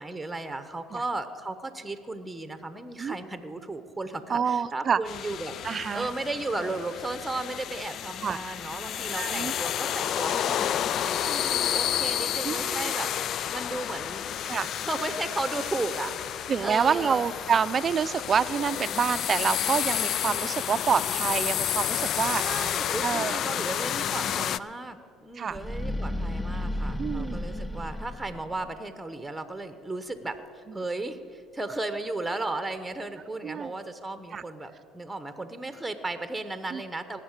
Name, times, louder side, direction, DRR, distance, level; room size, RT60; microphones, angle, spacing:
voice 1, 0.0-5.6 5.9-10.7 11.0-13.1 13.5-14.2 14.9-17.2 22.3-37.2, right 2 dB, 10° right, 9 dB, 1.0 m, -35 dB
voice 2, 4.3-5.0 5.6-6.1 8.2-8.4 9.2-9.5 12.4-12.9 14.4-14.7 16.5-22.4 23.0-23.4 25.4-25.6 27.0-27.4 30.7-30.8 33.4-33.7 34.3-34.4 36.7-36.8, right 7 dB, 40° right, 14 dB, 0.5 m, -27 dB
sound 1, 5.1-24.6, left 10 dB, 55° left, 0.3 m, -30 dB
sound 2, 25.5-28.8, left 1 dB, 10° left, 0.7 m, -33 dB
19.0 x 7.4 x 7.4 m, 2.5 s
supercardioid pair, 80°, 0 cm